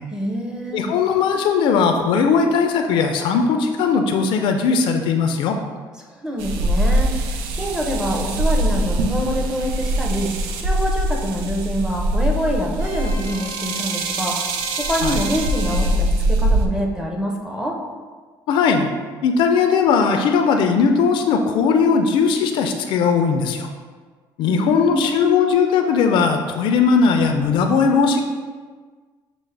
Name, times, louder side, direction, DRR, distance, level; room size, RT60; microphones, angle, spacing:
voice 1, 0.1-0.8 6.0-14.5 14.8-17.8 24.5-25.5, equal, 5° right, 0 dB, 0.6 m, -26 dB
voice 2, 0.7-5.6 15.0-15.2 18.5-18.9 19.2-23.7 24.4-28.2, left 5 dB, 70° left, 5 dB, 0.4 m, -18 dB
sound 1, 6.4-16.7, right 1 dB, 90° right, 0.4 m, -22 dB
sound 2, 12.8-15.9, equal, 50° right, 1.0 m, -36 dB
6.0 x 2.1 x 3.2 m, 1.5 s
cardioid pair, 110°, 9 cm